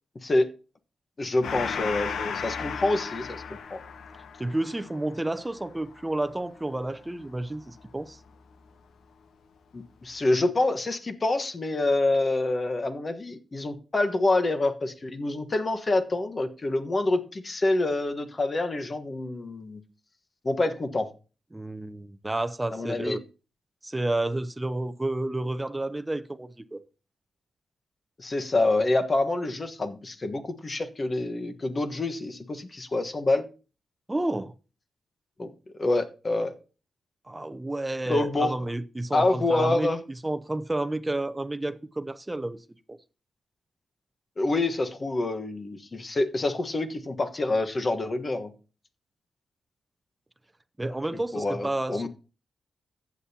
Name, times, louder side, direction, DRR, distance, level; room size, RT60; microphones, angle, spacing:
voice 1, 1.2-3.4 3.7-3.8 9.7-19.8 20.4-21.1 22.7-23.2 28.2-33.4 35.4-35.5 35.8-36.5 38.1-38.5 39.1-40.0 44.4-48.5 51.1-52.1, left 2 dB, 35° left, 1.3 m, -27 dB
Gong, 1.4-8.4, left 6 dB, 80° left, 0.9 m, -36 dB
voice 2, 4.4-8.2 21.5-23.2 23.8-26.8 34.1-34.5 37.3-43.0 50.8-52.1, right 2 dB, 15° right, 0.6 m, -31 dB
14.5 x 8.5 x 2.8 m
cardioid pair, 95°, 0 cm